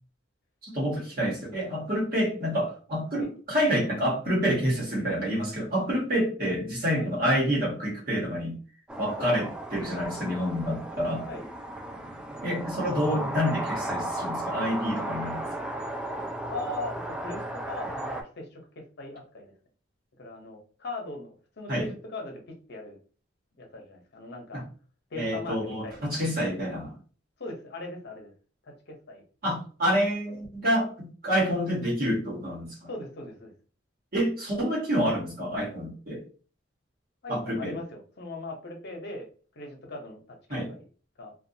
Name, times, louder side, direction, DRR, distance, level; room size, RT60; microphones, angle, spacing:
voice 1, 0.6-8.6 9.0-11.3 12.4-15.5 21.7-21.9 24.5-24.6 25.1-26.9 29.4-32.9 34.1-36.2 37.3-37.8 40.5-40.7, equal, 50° right, -3 dB, 1.1 m, -28 dB
sound 1, 8.9-18.2, right 1 dB, 5° right, 0.3 m, -35 dB
voice 2, 16.5-19.5 20.2-23.0 23.6-24.6 25.1-26.1 27.4-28.3 28.6-29.2 32.9-33.5 37.2-39.3 39.5-40.9 41.2-41.4, left 2 dB, 60° left, 1 dB, 0.8 m, -39 dB
2.4 x 2.3 x 2.7 m, 0.39 s
head